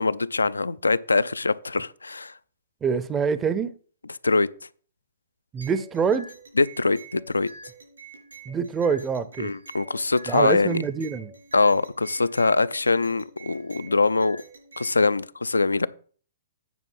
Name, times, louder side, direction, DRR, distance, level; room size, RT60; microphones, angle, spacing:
voice 1, 0.0-2.3 4.2-4.5 6.6-7.5 9.4-10.8 11.5-14.4 14.8-15.9, left 3 dB, 85° left, 0.4 m, -23 dB
voice 2, 2.8-3.7 5.5-6.3 8.5-9.5 10.3-11.3, right 6 dB, 15° right, 0.6 m, -25 dB
sound 1, 5.6-15.0, right 3 dB, 80° right, 4.4 m, -46 dB
9.3 x 5.0 x 5.5 m
figure-of-eight pair, 125°, 0 cm